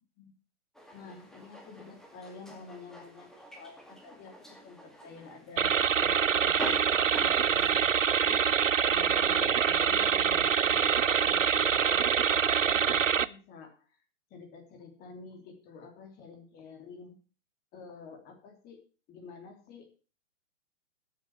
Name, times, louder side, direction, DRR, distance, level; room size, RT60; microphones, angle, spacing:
sound 1, 0.7-7.9, right 1 dB, ahead, 2.0 m, -46 dB
voice 1, 0.9-7.9 8.2-14.0 14.3-17.2 17.7-18.8 19.1-20.0, left 4 dB, 25° left, 5 dB, 2.9 m, -49 dB
sound 2, 5.6-13.3, right 7 dB, 80° right, 0.7 m, -25 dB
13.0 x 6.7 x 6.8 m, 0.37 s
figure-of-eight pair, 110°, 38 cm